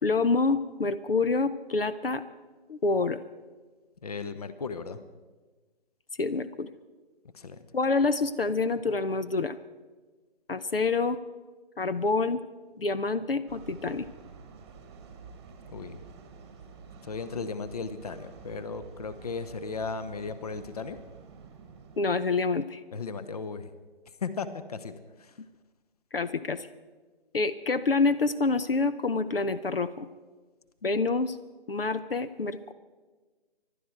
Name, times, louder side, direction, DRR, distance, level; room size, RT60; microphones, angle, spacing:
voice 1, 0.0-2.2 2.7-3.2 6.2-6.7 7.7-9.6 10.5-11.2 11.8-12.4 12.8-14.1 22.0-22.8 26.1-26.7 27.3-30.1 30.8-31.4 31.7-32.7, left 3 dB, 65° left, 13 dB, 0.8 m, -27 dB
voice 2, 4.0-5.0 7.3-7.6 15.7-16.0 17.0-21.0 22.9-23.7 24.2-24.9 25.2-25.3, left 4 dB, 40° left, 13 dB, 0.9 m, -36 dB
sound 1, 13.5-22.1, right 5 dB, 10° right, 1.4 m, -49 dB
25.0 x 12.0 x 4.6 m, 1.3 s
figure-of-eight pair, 150°, 31 cm